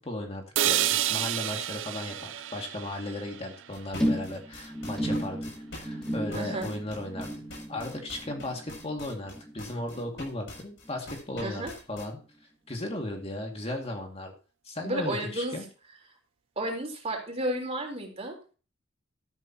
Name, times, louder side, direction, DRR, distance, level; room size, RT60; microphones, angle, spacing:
voice 1, 0.0-7.3 7.7-12.2 12.7-14.3 14.7-15.7, left 1 dB, 30° left, 2 dB, 2.2 m, -36 dB
sound 1, 0.6-4.6, right 12 dB, 75° right, 0.5 m, -30 dB
sound 2, 3.7-12.1, left 2 dB, 70° left, 7.4 m, -44 dB
sound 3, 4.0-10.6 10.8-11.3 11.6-11.7, equal, ahead, 3.3 m, -34 dB
voice 2, 6.3-6.7 11.4-11.7 14.8-15.6 16.6-18.4, right 1 dB, 35° right, 1 dB, 3.9 m, -32 dB
13.0 x 12.0 x 2.9 m, 0.35 s
head